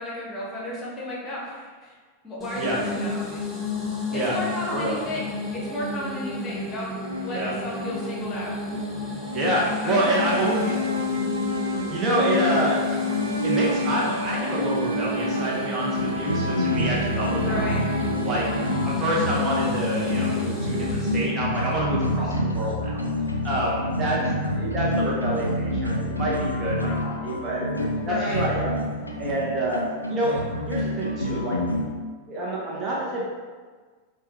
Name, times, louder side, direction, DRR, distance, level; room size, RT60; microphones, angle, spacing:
voice 1, 0.0-1.9 2.2-3.4 4.1-5.3 5.5-6.9 7.2-8.5 9.8-10.8 17.4-17.8 28.0-28.4, left 1 dB, 25° left, -4 dB, 1.2 m, -33 dB
sound 1, 2.4-21.3, left 3 dB, 5° left, 0.8 m, -32 dB
sound 2, 7.0-20.9, left 2 dB, 80° right, 0.3 m, -30 dB
voice 2, 9.3-10.6 11.5-13.0 13.4-17.7 18.2-18.5 18.8-23.0 23.4-24.2 24.5-27.7 28.1-28.8 29.2-30.4 30.7-31.6 32.3-33.3, right 1 dB, 25° right, -5 dB, 0.9 m, -27 dB
sound 3, 16.0-31.9, left 1 dB, 85° left, 0.4 m, -28 dB
5.6 x 2.3 x 3.0 m, 1.5 s
figure-of-eight pair, 90°, 0 cm